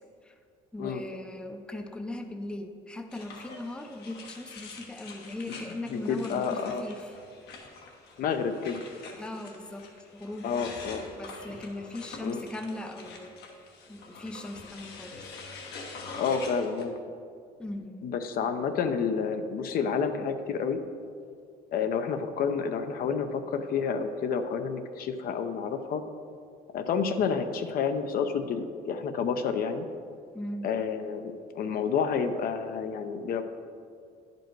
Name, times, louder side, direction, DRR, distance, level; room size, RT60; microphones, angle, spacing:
voice 1, 0.7-7.1 9.2-9.8 10.1-13.3 13.9-15.2 17.6-18.1 30.3-30.7, left 1 dB, 5° left, 5 dB, 0.5 m, -39 dB
sound 1, 3.1-16.8, left 4 dB, 75° left, 1.1 m, -46 dB
voice 2, 5.9-6.8 8.2-8.8 10.4-11.1 12.2-12.4 16.2-16.9 18.0-20.8 21.7-26.0 26.7-29.9 30.6-33.4, left 6 dB, 60° left, 7 dB, 0.6 m, -29 dB
10.0 x 5.2 x 4.6 m, 2.3 s
cardioid pair, 110°, 17 cm